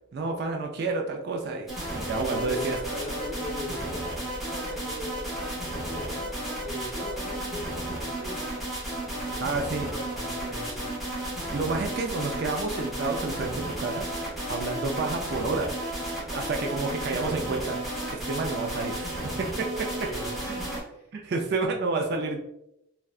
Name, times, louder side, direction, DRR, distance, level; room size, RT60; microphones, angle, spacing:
voice 1, 0.1-1.7 2.0-3.0 9.4-9.9 11.5-14.1 14.5-15.7 16.3-17.8 18.1-19.9 20.5-20.6 21.1-22.4, right 3 dB, 50° right, 2 dB, 0.3 m, -29 dB
sound 1, 1.7-20.8, right 1 dB, ahead, 0.7 m, -33 dB
voice 2, 2.2-2.7 3.0-5.2 5.7-6.3 6.6-8.5 9.0-9.4 9.8-10.9 19.9-21.1, equal, 30° left, -4 dB, 1.2 m, -40 dB
3.5 x 2.2 x 2.3 m, 0.83 s
head